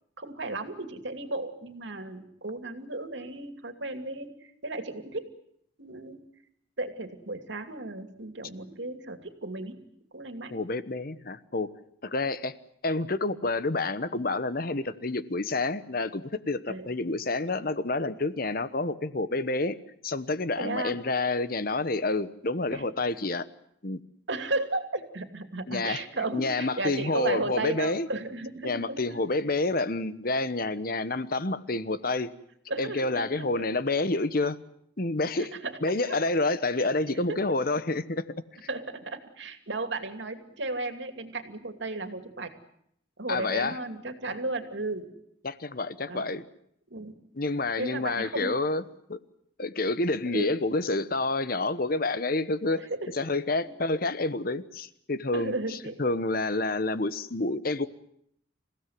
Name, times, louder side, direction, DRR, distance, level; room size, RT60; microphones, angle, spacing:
voice 1, 0.2-5.3 5.8-6.2 6.8-9.8 10.1-10.6 16.7-16.9 20.6-21.0 22.7-22.8 24.3-29.2 32.7-33.7 35.4-35.8 36.1-36.2 36.8-37.4 38.7-42.6 43.2-45.1 46.1-46.3 46.9-47.2 47.8-48.6 50.3-50.5 52.8-53.2 53.6-53.7 55.3-56.0, right 2 dB, 70° right, 8 dB, 2.7 m, -35 dB
voice 2, 10.5-11.7 12.0-12.5 12.8-19.8 20.0-23.5 23.8-24.0 25.7-26.0 26.3-28.1 28.6-32.3 32.8-34.6 35.0-35.5 35.8-38.2 43.3-43.8 45.4-46.4 47.4-48.8 49.1-49.2 49.6-52.9 53.1-55.5 56.0-57.9, left 2 dB, 50° left, 14 dB, 1.1 m, -28 dB
28.0 x 16.5 x 9.4 m, 0.72 s
head